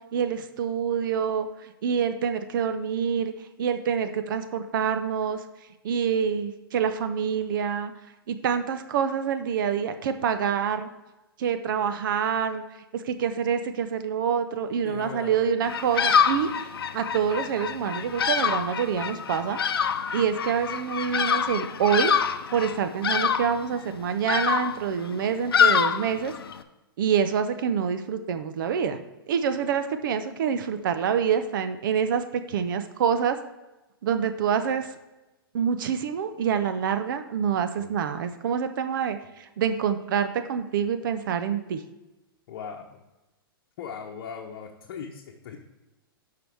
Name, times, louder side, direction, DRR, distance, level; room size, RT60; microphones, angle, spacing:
voice 1, 0.0-3.3 3.6-5.4 5.8-7.9 8.3-10.9 11.4-12.6 12.9-19.6 20.1-22.2 22.5-26.3 27.0-29.0 29.3-33.4 34.0-34.9 35.5-41.8, right 7 dB, 60° right, 9 dB, 0.7 m, -26 dB
voice 2, 14.8-15.5 37.8-37.9 42.5-43.0 43.8-45.6, left 7 dB, 55° left, 0 dB, 1.0 m, -39 dB
Bird vocalization bird call bird song, 15.6-26.6, left 7 dB, 75° left, 0.6 m, -26 dB
12.5 x 4.8 x 3.5 m, 1.0 s
hypercardioid pair, 120°, 12 cm